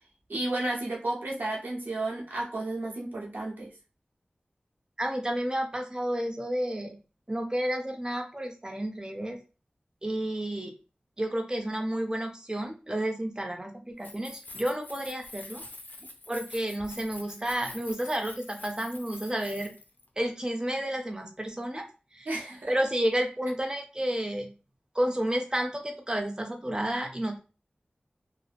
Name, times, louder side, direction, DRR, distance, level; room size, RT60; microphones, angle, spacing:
voice 1, 0.3-3.7 22.3-22.7, right 2 dB, 85° right, -3 dB, 0.9 m, -32 dB
voice 2, 5.0-7.0 7.3-9.4 10.0-10.7 11.2-15.6 16.3-19.8 20.2-21.9 22.1-22.3 22.7-24.5 24.9-27.4, right 1 dB, 25° right, 3 dB, 0.7 m, -31 dB
Keys jangling, 13.9-20.1, left 2 dB, 65° left, 0.4 m, -45 dB
2.6 x 2.1 x 2.4 m, 0.33 s
wide cardioid pair, 40°, 3 cm